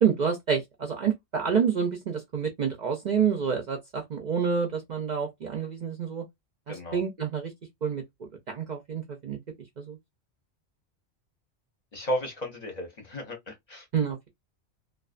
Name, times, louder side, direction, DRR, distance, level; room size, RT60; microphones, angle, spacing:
voice 1, 0.0-6.2 6.7-7.5 7.8-8.0 8.5-9.4 9.8-10.0 13.9-14.3, right 7 dB, 55° right, 0.5 m, -28 dB
voice 2, 6.7-7.0 11.9-13.8, equal, 45° left, 0.7 m, -34 dB
2.4 x 2.2 x 2.4 m
omnidirectional pair, 1.2 m